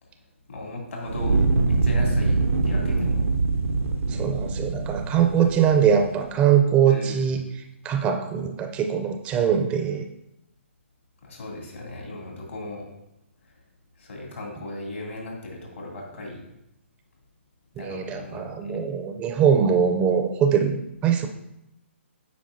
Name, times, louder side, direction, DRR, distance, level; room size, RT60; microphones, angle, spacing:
voice 1, 0.5-1.4 1.7-3.2 5.4-5.9 6.9-7.3 11.2-12.9 13.4-13.5 14.0-16.4 17.8-18.8, left 2 dB, 75° left, -1 dB, 2.3 m, -37 dB
Fire, 1.0-6.2, right 3 dB, 85° right, 0.5 m, -24 dB
voice 2, 4.1-7.4 7.8-10.0 17.8-21.3, right 8 dB, 15° right, 6 dB, 0.4 m, -22 dB
8.3 x 5.1 x 2.6 m, 0.84 s
figure-of-eight pair, 140°, 7 cm